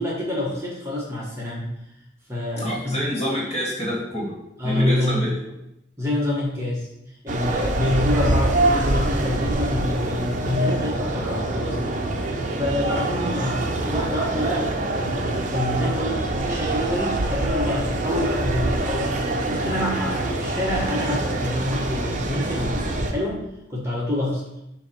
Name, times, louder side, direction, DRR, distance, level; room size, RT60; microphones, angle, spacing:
voice 1, 0.0-1.7 2.3-3.0 4.6-5.2 6.0-6.9 7.2-12.3 12.6-23.4 23.7-24.4, left 1 dB, 15° right, -5 dB, 1.3 m, -27 dB
voice 2, 2.6-4.3 4.6-5.3 12.9-13.0, equal, 30° left, -6 dB, 2.1 m, -27 dB
sound 1, 7.3-23.1, right 2 dB, 40° right, 0.7 m, -25 dB
7.4 x 2.9 x 5.7 m, 0.85 s
head